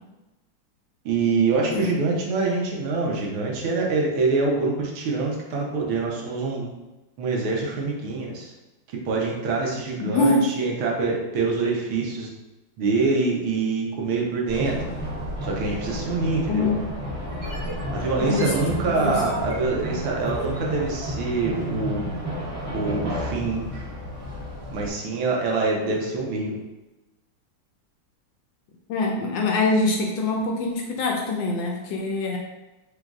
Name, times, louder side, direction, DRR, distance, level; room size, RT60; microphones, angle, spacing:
voice 1, 1.0-6.7 7.2-8.5 8.9-12.3 12.8-14.8 15.4-16.7 17.9-22.0 22.7-23.6 24.7-26.5, right 3 dB, 80° right, -1 dB, 1.6 m, -25 dB
voice 2, 10.0-10.4 16.5-16.9 18.2-19.2 28.9-32.4, left 2 dB, 75° left, 0 dB, 1.2 m, -24 dB
sound 1, 14.5-24.9, equal, 50° right, 1.4 m, -31 dB
sound 2, 17.2-21.2, right 1 dB, 65° right, 0.4 m, -36 dB
4.8 x 3.0 x 2.4 m, 1.0 s
omnidirectional pair, 2.3 m